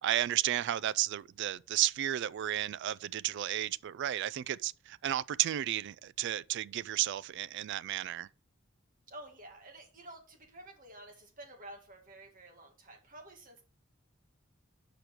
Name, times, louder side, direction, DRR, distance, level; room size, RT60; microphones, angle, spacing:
voice 1, 0.0-8.3, right 12 dB, 60° right, 0.3 m, -33 dB
voice 2, 9.1-13.6, right 1 dB, 45° right, 2.0 m, -51 dB
6.0 x 5.1 x 6.1 m
head